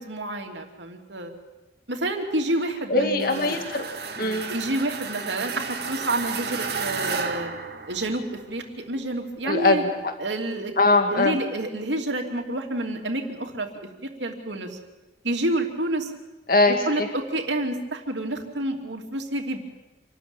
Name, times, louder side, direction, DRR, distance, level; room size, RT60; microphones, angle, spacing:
voice 1, 0.0-1.3 1.9-3.6 4.5-7.5 7.9-9.8 10.2-10.7 11.1-13.7 14.0-14.8 15.2-16.1 16.9-19.6, right 1 dB, 85° right, 3 dB, 2.8 m, -29 dB
voice 2, 2.9-3.8 4.2-4.5 9.5-10.1 10.8-11.4 16.5-17.1, left 2 dB, 55° left, 5 dB, 2.1 m, -21 dB
sound 1, 3.2-8.4, right 5 dB, 65° right, 1.8 m, -32 dB
27.0 x 13.0 x 9.0 m, 1.1 s
head